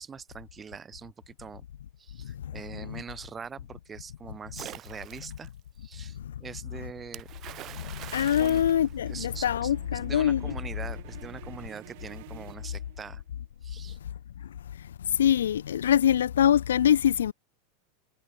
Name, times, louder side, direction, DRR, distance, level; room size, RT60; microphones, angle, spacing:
voice 1, 0.0-1.6 2.0-5.5 5.8-7.3 8.4-8.7 9.1-13.2 13.6-14.0, right 6 dB, 25° right, 2.9 m, -43 dB
Splash splatter, 4.5-5.5 7.1-9.6, right 14 dB, 45° right, 0.7 m, -44 dB
sound 1, 6.2-13.4, right 25 dB, 65° right, 2.8 m, -51 dB
voice 2, 7.7-10.4 14.8-17.3, left 10 dB, 85° left, 0.4 m, -24 dB
hypercardioid pair, 100°, 0 cm